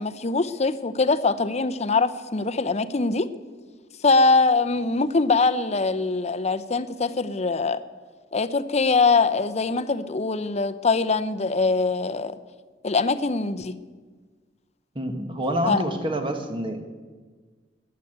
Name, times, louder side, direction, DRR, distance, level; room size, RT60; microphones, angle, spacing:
voice 1, 0.0-3.3 4.0-7.8 8.3-12.3 12.8-13.8 15.7-15.8, left 3 dB, 35° left, 0.7 m, -22 dB
voice 2, 14.9-16.8, equal, 30° right, 1.7 m, -27 dB
16.5 x 10.5 x 8.0 m
head